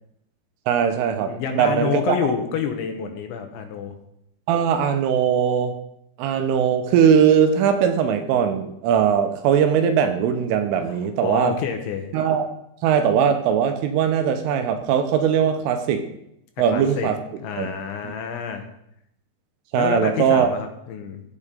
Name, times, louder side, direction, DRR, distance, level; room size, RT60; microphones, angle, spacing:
voice 1, 0.7-2.3 4.5-5.8 6.2-11.5 12.1-12.4 12.8-16.0 16.6-17.2 17.6-17.7 18.0-18.1 19.7-20.5, right 8 dB, 80° right, 7 dB, 3.3 m, -20 dB
voice 2, 1.2-4.0 10.8-12.1 16.7-17.1 17.4-18.7 19.7-21.2, left 7 dB, 75° left, 5 dB, 3.0 m, -28 dB
15.0 x 9.6 x 3.8 m, 0.77 s
omnidirectional pair, 5.9 m